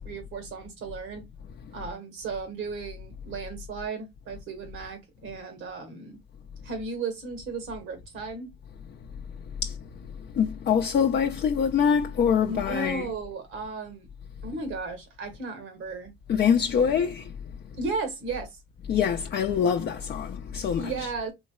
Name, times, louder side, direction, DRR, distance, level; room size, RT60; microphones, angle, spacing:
voice 1, 0.0-1.3 1.7-6.2 6.6-8.5 12.5-14.1 14.4-16.1 17.8-18.6 20.8-21.3, right 4 dB, 90° right, 1.4 m, -35 dB
voice 2, 10.3-13.1 16.3-17.3 18.9-21.1, left 7 dB, 55° left, 0.5 m, -24 dB
3.8 x 3.1 x 2.2 m
cardioid pair, 90°, 20 cm